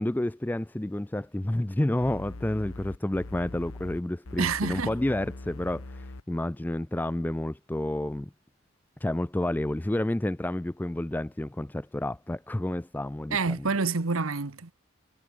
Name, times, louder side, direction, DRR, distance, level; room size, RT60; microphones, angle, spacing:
voice 1, 0.0-8.3 9.0-13.7, left 1 dB, 10° left, 0.3 m, -30 dB
sound 1, 2.0-4.0 4.2-6.2, left 2 dB, 80° left, 1.1 m, -41 dB
voice 2, 4.4-4.9 13.3-14.7, right 4 dB, 80° right, 1.2 m, -28 dB
head